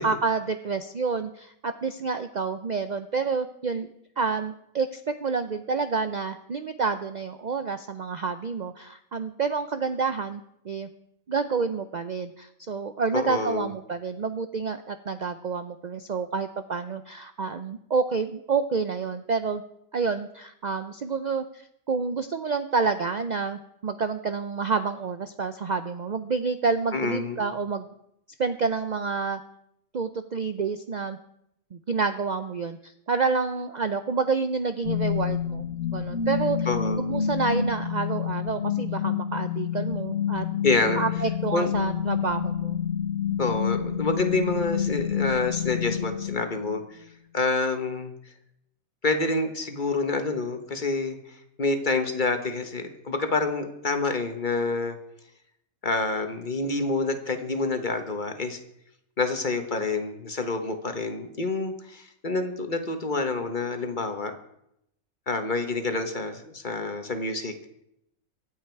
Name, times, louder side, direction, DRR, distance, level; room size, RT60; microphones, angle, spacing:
voice 1, 0.0-10.9 11.3-19.6 19.9-27.9 28.4-29.4 29.9-31.2 31.7-35.6 35.9-36.7 37.0-40.5 41.0-42.8 43.3-43.4, right 4 dB, 70° right, 10 dB, 0.4 m, -28 dB
voice 2, 13.1-13.7 26.9-27.4 36.6-37.0 40.6-41.0 41.5-41.7 43.4-47.0 47.3-48.1 49.0-55.0 55.8-58.6 59.2-64.3 65.3-67.5, left 3 dB, 35° left, 7 dB, 1.4 m, -27 dB
sound 1, 34.8-46.8, left 8 dB, 50° left, 1.5 m, -28 dB
24.0 x 8.1 x 4.6 m, 0.78 s
omnidirectional pair, 1.6 m